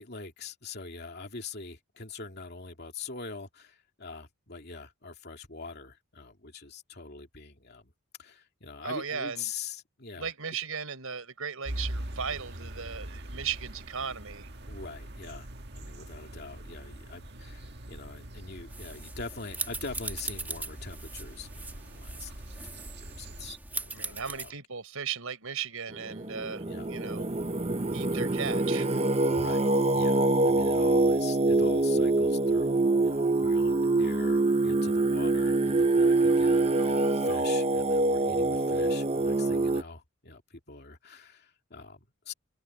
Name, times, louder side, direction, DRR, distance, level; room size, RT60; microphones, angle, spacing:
voice 1, 0.0-7.9 8.2-10.3 14.7-15.5 15.7-24.5 26.6-26.9 28.9-29.0 29.3-42.3, left 4 dB, 45° left, 2.7 m, -44 dB
voice 2, 8.8-9.4 10.1-14.5 23.9-27.3 27.9-28.9, right 6 dB, 75° right, 4.5 m, -36 dB
sound 1, 11.6-23.6, right 1 dB, 50° right, 1.7 m, -42 dB
sound 2, 18.7-24.5, right 3 dB, 10° right, 2.0 m, -40 dB
Singing, 26.0-39.8, right 2 dB, 30° right, 0.8 m, -25 dB
open air
head